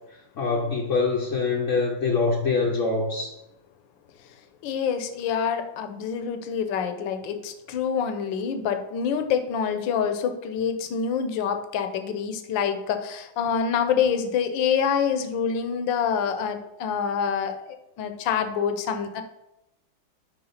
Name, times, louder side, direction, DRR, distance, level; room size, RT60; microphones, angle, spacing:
voice 1, 0.4-3.3, left 4 dB, 55° left, -2 dB, 0.8 m, -24 dB
voice 2, 4.6-19.2, left 7 dB, 75° left, 8 dB, 1.4 m, -26 dB
5.8 x 4.5 x 5.6 m, 0.88 s
omnidirectional pair, 2.2 m